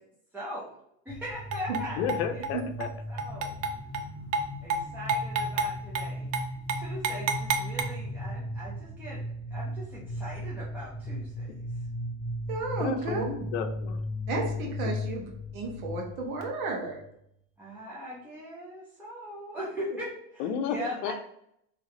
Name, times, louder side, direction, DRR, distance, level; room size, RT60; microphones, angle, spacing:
voice 1, 0.3-0.7 1.1-2.1 3.1-3.5 4.6-6.3 6.8-9.2 9.5-11.5 17.6-21.1, equal, 5° right, -8 dB, 0.4 m, -40 dB
sound 1, 1.1-17.0, left 1 dB, 10° left, 1.5 m, -37 dB
sound 2, 1.5-1.8 2.1-2.5 2.8-2.9 3.2-4.0 4.3-4.4 4.7-4.8 5.1-5.7 5.9-6.1 6.3-6.4 6.7-7.8, right 4 dB, 55° right, 0.6 m, -28 dB
voice 2, 2.0-2.9 12.8-14.0 20.4-20.8 21.0-21.1, left 7 dB, 55° left, 7 dB, 0.6 m, -32 dB
voice 3, 12.5-13.2 14.3-17.0, right 3 dB, 75° right, 1 dB, 1.3 m, -33 dB
3.3 x 3.1 x 3.7 m, 0.74 s
supercardioid pair, 150°, 41 cm